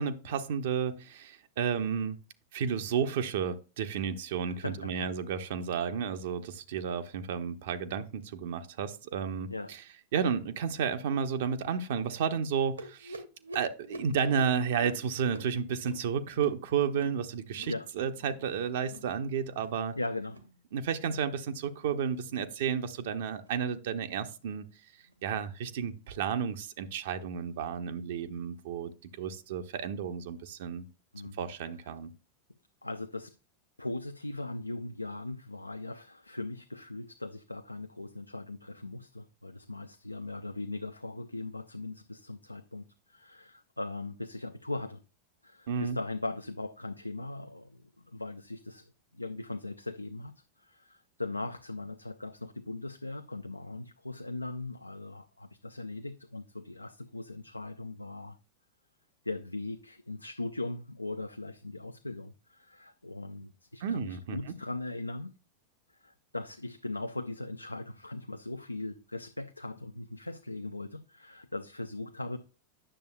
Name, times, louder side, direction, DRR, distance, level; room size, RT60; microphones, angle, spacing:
voice 1, 0.0-2.2 2.5-9.8 10.1-13.2 13.5-19.9 20.7-24.6 25.2-30.8 31.4-32.1 45.7-46.0 63.8-64.5, right 7 dB, 55° right, 0.6 m, -32 dB
voice 2, 4.5-5.1 9.5-9.7 17.7-17.9 20.0-20.4 31.1-31.4 32.8-33.3 33.8-45.0 45.4-50.3 50.6-58.4 59.2-65.3 66.0-72.4, left 2 dB, 85° left, 0.4 m, -39 dB
sound 1, 12.8-17.8 18.1-18.5 18.8-19.1 19.5-19.8 20.2-20.5 20.9-21.3 21.7-22.0 22.5-22.8 23.4-23.6 24.2-24.4 25.1-25.2 25.9-26.0, right 1 dB, 80° right, 1.2 m, -48 dB
9.9 x 6.8 x 2.2 m
figure-of-eight pair, 90°, 0 cm